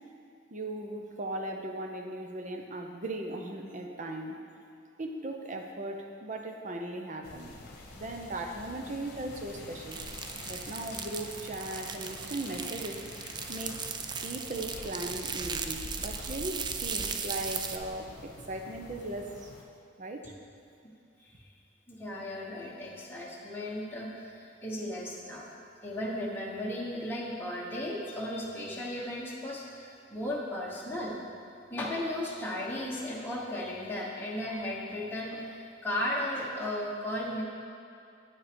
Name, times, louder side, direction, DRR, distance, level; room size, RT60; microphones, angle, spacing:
voice 1, 0.5-4.4 5.0-7.5 8.0-10.0 10.5-13.0 13.5-13.8 14.2-19.5 20.0-20.3, right 1 dB, 40° right, 3 dB, 0.8 m, -38 dB
sound 1, 7.2-19.6, left 2 dB, 55° left, 1.1 m, -46 dB
sound 2, 9.9-17.8, right 6 dB, 25° right, 0.3 m, -37 dB
voice 2, 21.9-25.5 25.8-31.2 31.7-37.4, left 1 dB, 10° left, -5 dB, 1.3 m, -35 dB
9.1 x 6.2 x 5.2 m, 2.6 s
head